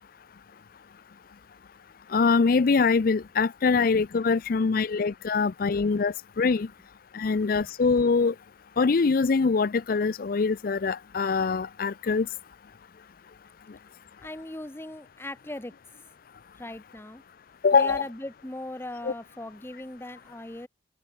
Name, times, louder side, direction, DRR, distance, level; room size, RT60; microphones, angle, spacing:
voice 1, 2.1-6.7 7.1-8.3 8.8-12.3 17.6-18.0 19.0-19.1, left 4 dB, 55° left, 0.5 m, -23 dB
voice 2, 7.3-7.7 14.2-15.7 16.6-17.2 17.7-20.7, left 1 dB, 15° left, 1.0 m, -39 dB
head